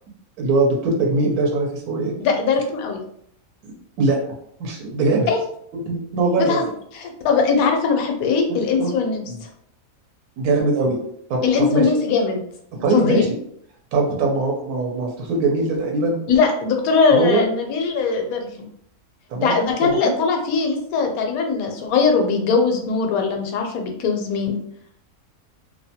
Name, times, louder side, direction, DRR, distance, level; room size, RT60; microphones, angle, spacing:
voice 1, 0.4-2.1 3.6-4.2 4.6-5.3 5.7-6.6 8.5-8.9 9.3-9.4 10.4-11.0 11.3-11.9 12.8-13.3 13.9-16.2 17.1-17.4 19.3-19.5 19.8-20.1, right 3 dB, 85° right, -1 dB, 1.1 m, -21 dB
voice 2, 2.2-3.0 5.3-5.4 6.4-6.7 6.9-9.5 11.4-12.4 12.9-13.2 16.3-18.7 19.3-24.6, left 5 dB, 75° left, 3 dB, 1.0 m, -20 dB
2.7 x 2.1 x 2.7 m, 0.69 s
omnidirectional pair, 1.5 m